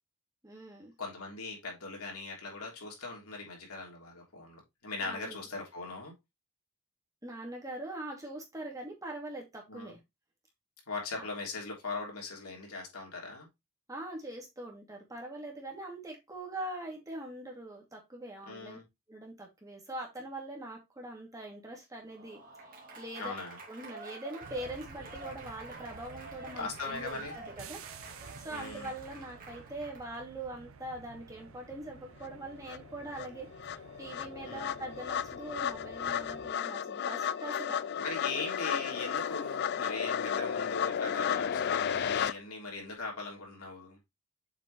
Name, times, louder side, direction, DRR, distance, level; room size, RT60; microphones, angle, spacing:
voice 1, 0.4-0.9 5.0-5.4 7.2-10.0 11.2-11.3 13.9-18.8 19.1-22.4 23.0-23.3 23.7-27.8 28.4-37.8, right 1 dB, 15° right, 2.4 m, -42 dB
voice 2, 1.0-6.1 9.7-9.9 10.9-13.5 18.5-18.8 23.2-23.6 26.6-27.4 28.5-28.9 34.4-34.7 38.0-44.0, left 3 dB, 90° left, 3.3 m, -40 dB
Applause / Crowd, 22.0-30.2, right 3 dB, 40° right, 2.3 m, -48 dB
sound 1, 24.4-36.5, right 4 dB, 65° right, 0.7 m, -52 dB
sound 2, 32.2-32.3 32.7-42.3, left 8 dB, 50° left, 0.3 m, -33 dB
7.3 x 5.2 x 3.1 m
head